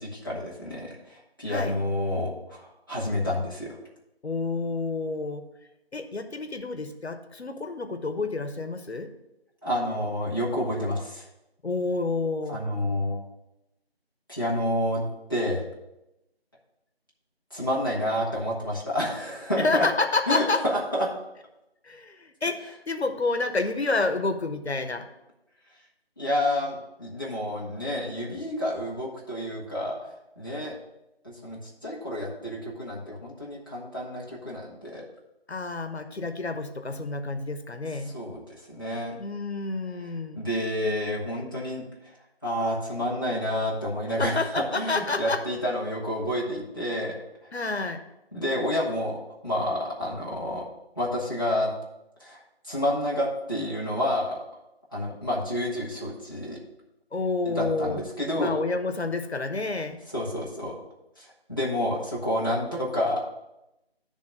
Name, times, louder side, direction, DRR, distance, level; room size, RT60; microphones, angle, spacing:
voice 1, 0.0-3.8 9.6-11.3 12.5-13.2 14.3-15.6 17.5-19.9 20.3-21.1 26.2-30.7 31.2-35.0 38.1-38.4 38.7-39.1 40.3-42.1 42.4-47.6 48.3-49.2 49.4-50.6 51.0-51.7 52.2-54.4 54.9-56.6 57.4-58.6 60.1-60.8 61.2-63.3, left 1 dB, 20° left, -6 dB, 1.2 m, -29 dB
voice 2, 4.2-5.4 5.9-9.1 11.6-12.6 19.6-20.6 21.8-25.1 35.5-38.1 39.2-40.4 44.2-45.4 47.5-48.0 57.1-58.0 58.4-60.0, left 3 dB, 85° left, 8 dB, 1.0 m, -29 dB
9.8 x 3.5 x 6.4 m, 0.91 s
figure-of-eight pair, 175°, 31 cm